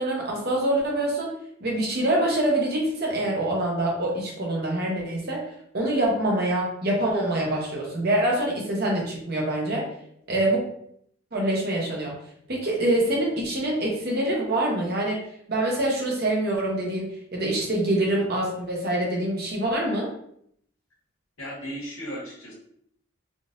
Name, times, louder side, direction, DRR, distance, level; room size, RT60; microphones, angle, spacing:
voice 1, 0.0-1.3 1.6-5.4 5.7-9.9 10.3-10.6 11.3-12.1 12.5-15.2 15.5-20.1, right 1 dB, 50° right, -2 dB, 0.9 m, -25 dB
voice 2, 21.4-22.5, equal, 75° left, -5 dB, 1.2 m, -35 dB
3.7 x 2.6 x 2.5 m, 0.68 s
head